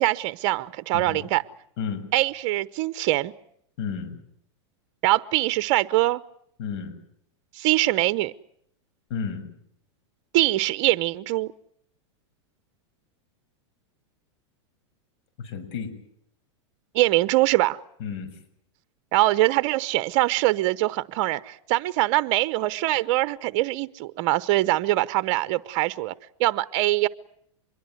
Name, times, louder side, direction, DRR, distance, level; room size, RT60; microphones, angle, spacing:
voice 1, 0.0-1.4 2.1-3.3 5.0-6.2 7.5-8.3 10.3-11.5 16.9-17.8 19.1-26.1 26.4-27.1, right 17 dB, 50° right, 0.9 m, -23 dB
voice 2, 3.8-4.2 6.6-7.0 9.1-9.5 15.4-15.9 18.0-18.4, left 6 dB, 60° left, 6.8 m, -32 dB
25.0 x 22.5 x 7.9 m
supercardioid pair, 135°, 15 cm